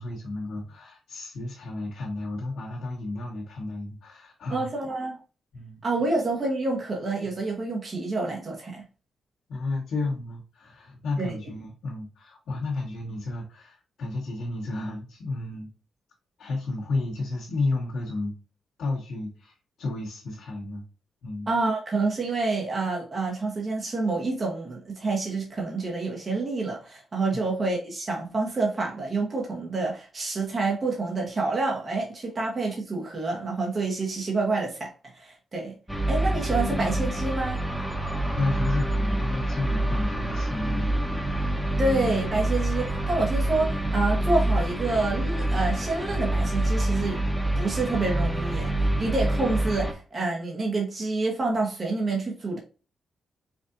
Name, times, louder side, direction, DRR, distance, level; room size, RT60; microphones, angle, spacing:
voice 1, 0.0-4.7 5.5-5.8 9.5-15.7 16.4-18.3 18.8-20.8 21.2-21.5 27.3-27.4 38.3-40.9, left 2 dB, 75° left, 1.3 m, -32 dB
voice 2, 4.5-5.2 5.8-8.8 11.2-11.4 21.5-35.8 36.1-37.6 41.8-47.2 47.5-52.6, right 3 dB, 45° right, 1.2 m, -28 dB
sound 1, 35.9-49.9, right 1 dB, ahead, 1.0 m, -26 dB
5.0 x 2.5 x 2.6 m
supercardioid pair, 55°, 0 cm